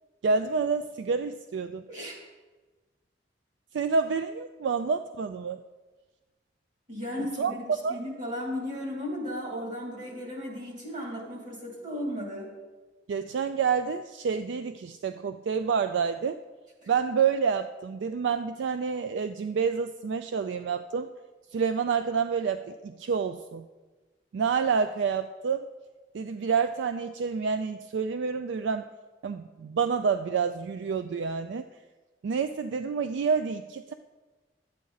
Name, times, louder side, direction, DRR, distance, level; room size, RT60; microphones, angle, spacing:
voice 1, 0.2-1.8 3.7-5.6 7.4-7.5 7.8-8.0 13.1-16.4 16.9-21.1 21.5-23.6 24.3-25.7 26.1-28.9 29.2-31.7 32.2-33.9, right 5 dB, 75° right, 10 dB, 0.3 m, -28 dB
voice 2, 6.9-12.5 16.8-16.9, left 1 dB, 45° right, -2 dB, 2.9 m, -35 dB
11.0 x 8.4 x 3.9 m, 1.3 s
head